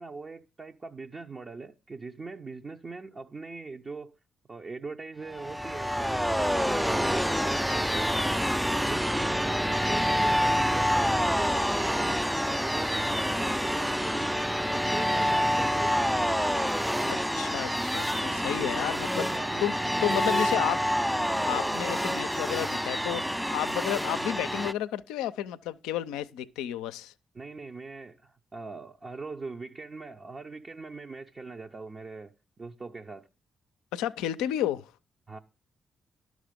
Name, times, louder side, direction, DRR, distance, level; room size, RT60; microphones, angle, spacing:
voice 1, 0.0-4.2 4.5-8.2 8.6-16.0 18.6-20.7 21.4-21.8 27.3-33.3 35.3-35.4, right 3 dB, 40° right, 0.7 m, -41 dB
sound 1, 5.3-24.7, equal, ahead, 0.4 m, -27 dB
voice 2, 17.1-19.3 19.6-19.7 20.0-20.8 21.5-27.1 33.9-34.9, left 12 dB, 80° left, 0.4 m, -31 dB
11.5 x 6.3 x 5.1 m
hypercardioid pair, 40°, 0 cm